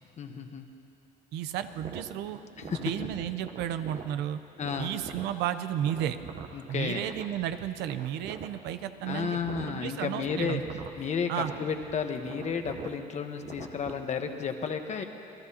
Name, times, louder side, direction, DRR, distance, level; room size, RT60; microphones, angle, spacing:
voice 1, 0.2-0.7 2.6-3.1 4.6-4.9 6.5-7.0 9.1-10.6 11.0-15.0, left 6 dB, 45° left, 6 dB, 1.1 m, -32 dB
voice 2, 1.3-2.4 2.8-4.4 4.8-6.2 6.7-9.4 9.7-10.6 11.3-11.5, right 10 dB, 85° right, 11 dB, 0.7 m, -33 dB
sound 1, 1.7-13.9, right 6 dB, 55° right, 0.9 m, -44 dB
27.0 x 18.0 x 2.9 m, 2.8 s
cardioid pair, 110°, 17 cm